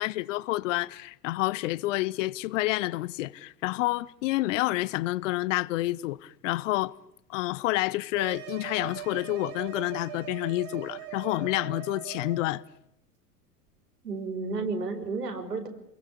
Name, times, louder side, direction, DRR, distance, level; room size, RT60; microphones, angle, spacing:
voice 1, 0.0-6.9 7.3-12.6, left 18 dB, 50° left, 1.1 m, -29 dB
sound 1, 8.1-12.6, right 13 dB, 50° right, 5.0 m, -41 dB
voice 2, 14.0-15.7, right 4 dB, 80° right, 5.3 m, -32 dB
29.5 x 22.0 x 8.5 m
figure-of-eight pair, 85°, 47 cm